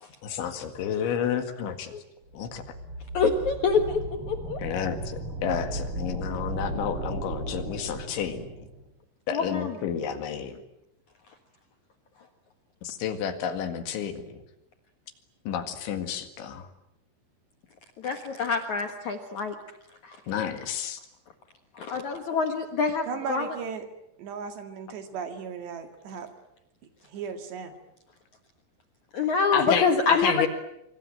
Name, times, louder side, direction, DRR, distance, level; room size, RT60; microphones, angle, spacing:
voice 1, 0.2-2.0 2.3-2.6 4.6-8.5 9.3-10.6 12.8-14.4 15.5-16.7 20.3-21.0 29.5-30.5, left 8 dB, 70° left, 8 dB, 4.2 m, -30 dB
sound 1, 2.3-8.8, right 1 dB, 30° right, 4.5 m, -36 dB
voice 2, 3.1-4.6 9.3-9.7 18.0-19.5 20.0-20.2 21.7-23.5 29.1-30.5, left 4 dB, 85° left, 6 dB, 1.7 m, -26 dB
voice 3, 23.1-23.9 24.2-26.3 27.1-27.7, right 5 dB, 60° right, 7 dB, 3.9 m, -36 dB
26.0 x 24.5 x 9.0 m, 0.84 s
omnidirectional pair, 5.9 m